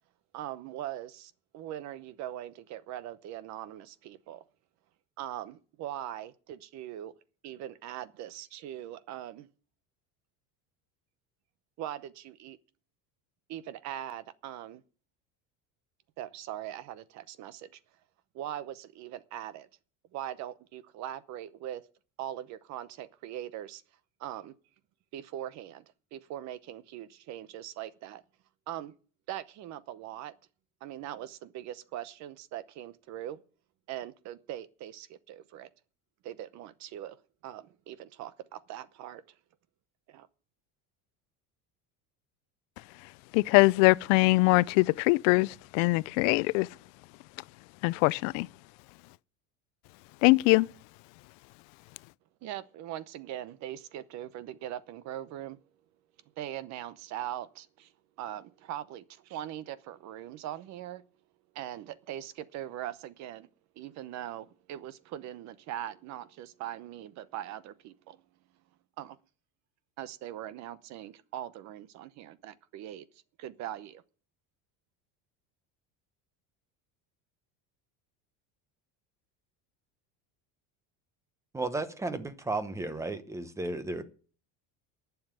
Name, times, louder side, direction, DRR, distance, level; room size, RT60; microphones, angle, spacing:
voice 1, 0.3-4.4 5.2-7.1 7.4-9.5 11.8-12.6 13.5-14.8 16.2-17.8 18.3-19.7 20.1-21.8 22.2-23.8 24.2-24.5 25.1-25.8 26.1-28.2 28.7-28.9 29.3-30.3 30.8-33.4 33.9-35.7 36.2-37.2 37.4-39.4 40.1-40.3 52.4-55.6 56.4-57.9 58.2-61.0 61.5-63.5 63.8-68.2 69.0-69.2 70.0-73.1 73.4-74.0, right 12 dB, 45° right, 0.8 m, -41 dB
voice 2, 43.3-46.7 47.8-48.5 50.2-50.7, left 24 dB, 80° left, 0.5 m, -22 dB
voice 3, 81.5-84.0, right 2 dB, 10° right, 0.9 m, -34 dB
11.5 x 7.1 x 8.9 m
cardioid pair, 165°, 38 cm